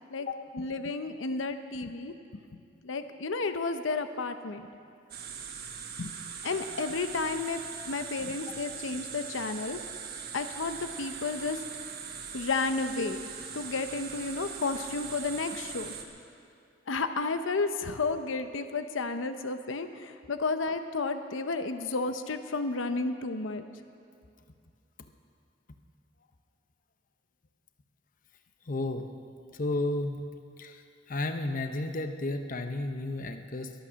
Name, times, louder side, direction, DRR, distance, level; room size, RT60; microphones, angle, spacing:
voice 1, 0.5-2.1 2.5-4.7 6.0-9.8 10.3-11.6 12.3-13.2 13.5-15.9 16.9-23.6, left 3 dB, 85° left, 9 dB, 0.7 m, -32 dB
sound 1, 5.1-16.0, right 6 dB, 55° right, 1.3 m, -41 dB
voice 2, 28.7-29.0 29.6-30.2 30.6-30.8 31.1-33.7, left 2 dB, 45° left, 7 dB, 0.8 m, -32 dB
23.0 x 8.7 x 6.3 m, 2.4 s
head